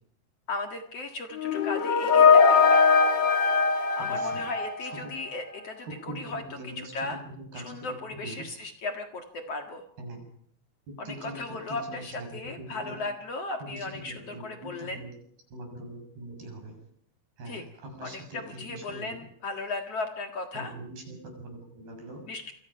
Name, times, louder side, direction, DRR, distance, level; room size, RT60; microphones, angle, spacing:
voice 1, 0.5-2.8 4.0-6.4 6.9-7.2 7.6-9.8 11.0-15.0 17.5-17.6 18.0-20.7 22.3-22.5, left 3 dB, 50° left, 4 dB, 2.4 m, -36 dB
sound 1, 1.4-5.3, left 5 dB, 75° left, 1.0 m, -21 dB
voice 2, 4.0-4.4 4.8-5.1 5.8-8.5 10.0-10.2 10.9-13.0 13.6-15.1 15.5-16.8 17.4-19.3 20.5-22.2, right 1 dB, 90° right, 4 dB, 8.7 m, -42 dB
28.0 x 22.5 x 5.8 m, 0.67 s
omnidirectional pair, 4.4 m